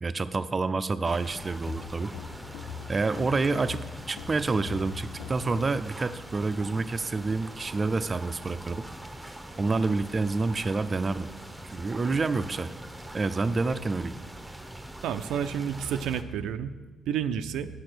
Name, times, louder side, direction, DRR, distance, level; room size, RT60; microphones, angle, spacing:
voice 1, 0.0-2.1 2.9-8.9 9.6-11.3 11.6-12.7 13.1-14.1, right 3 dB, 30° right, 11 dB, 0.5 m, -28 dB
sound 1, 1.0-16.2, right 1 dB, 10° right, 0.8 m, -43 dB
sound 2, 1.7-5.9, left 8 dB, 85° left, 0.5 m, -42 dB
voice 2, 15.0-16.7 17.1-17.7, right 8 dB, 85° right, 10 dB, 0.4 m, -30 dB
9.6 x 6.6 x 6.2 m, 1.2 s
cardioid pair, 90°, 0 cm